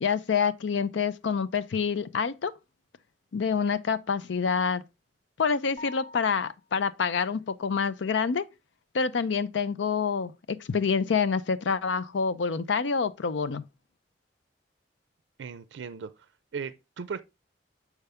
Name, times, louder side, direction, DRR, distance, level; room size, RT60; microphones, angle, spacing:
voice 1, 0.0-2.5 3.3-4.8 5.4-8.5 8.9-13.6, left 5 dB, 85° left, 0.5 m, -27 dB
sound 1, 5.8-6.8, left 1 dB, 30° left, 1.0 m, -46 dB
voice 2, 15.4-16.1 16.5-17.2, right 6 dB, 85° right, 0.4 m, -37 dB
6.7 x 4.6 x 3.4 m
head